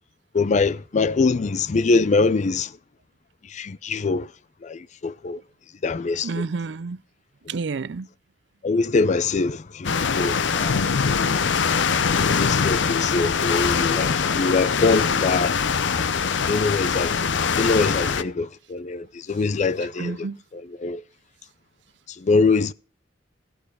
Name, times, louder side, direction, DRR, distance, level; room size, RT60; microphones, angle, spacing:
voice 1, 0.3-2.7 3.5-4.3 4.6-5.4 5.8-6.3 8.6-9.9 10.2-10.9 12.4-15.5 16.5-17.1 17.6-20.2 20.8-21.0 22.2-22.7, left 4 dB, 40° left, 0.4 m, -23 dB
voice 2, 6.2-7.0 7.5-8.1 10.5-10.6 20.0-20.4, right 4 dB, 70° right, 0.5 m, -30 dB
sound 1, 9.8-18.2, left 6 dB, 85° left, 0.6 m, -22 dB
15.0 x 6.9 x 4.9 m
head